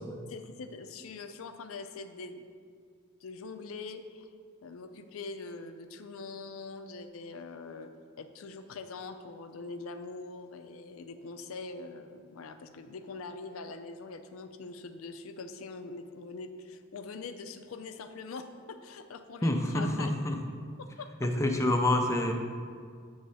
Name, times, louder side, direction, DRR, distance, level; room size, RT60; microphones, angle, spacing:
voice 1, 0.3-2.5 3.2-4.3 4.6-7.9 8.2-20.1 20.8-21.1, left 4 dB, 70° left, 8 dB, 0.4 m, -43 dB
voice 2, 19.4-20.3 21.2-22.3, left 1 dB, 15° left, 3 dB, 0.5 m, -27 dB
8.5 x 3.1 x 5.5 m, 2.1 s
head